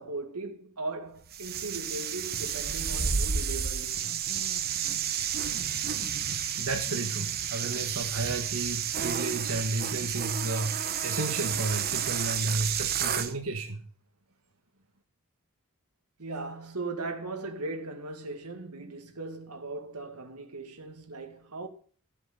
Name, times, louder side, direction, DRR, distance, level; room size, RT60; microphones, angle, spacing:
voice 1, 0.0-4.0 16.2-21.7, right 2 dB, 90° right, 2.1 m, -38 dB
sound 1, 1.3-13.3, right 8 dB, 45° right, 1.1 m, -31 dB
voice 2, 6.6-13.8, right 2 dB, 70° right, 1.5 m, -32 dB
13.5 x 7.8 x 6.7 m
head